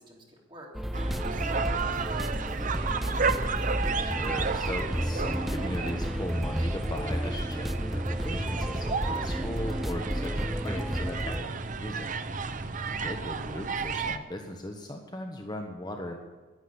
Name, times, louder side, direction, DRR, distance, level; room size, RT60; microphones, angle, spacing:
voice 1, 0.0-3.3, right 1 dB, 25° right, -2 dB, 3.4 m, -50 dB
sound 1, 0.7-11.4, equal, ahead, 0.3 m, -32 dB
sound 2, 0.9-14.2, right 4 dB, 45° right, 0.7 m, -33 dB
voice 2, 3.9-12.1 12.9-16.2, left 1 dB, 20° left, 3 dB, 1.1 m, -38 dB
11.5 x 10.0 x 9.6 m, 1.3 s
head